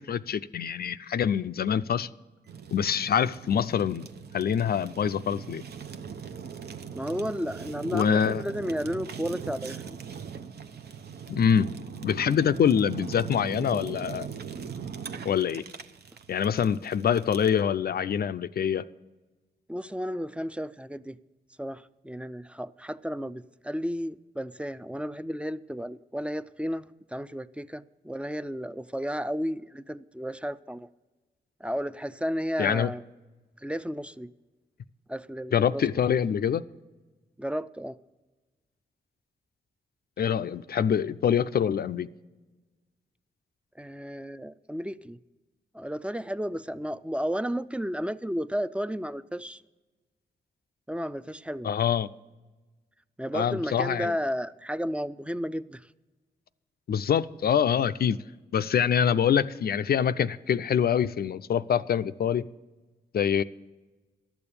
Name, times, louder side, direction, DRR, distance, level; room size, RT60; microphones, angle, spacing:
voice 1, 0.0-2.1 2.7-4.1 4.3-5.6 7.9-8.4 11.3-11.7 12.0-14.3 15.2-15.6 16.3-18.8 32.6-32.9 35.5-36.6 40.2-42.1 51.6-52.1 53.3-54.1 56.9-58.2 58.5-62.5 63.1-63.4, left 8 dB, 60° left, 0.4 m, -25 dB
Fire, 2.5-17.6, right 7 dB, 65° right, 0.7 m, -40 dB
voice 2, 6.9-10.0 19.7-21.2 21.6-30.9 31.6-33.0 33.6-34.3 35.1-35.8 37.4-38.0 43.8-45.2 45.7-49.6 50.9-51.7 53.2-55.9, equal, 5° right, 0.4 m, -33 dB
11.5 x 7.0 x 8.5 m
cardioid pair, 50°, 18 cm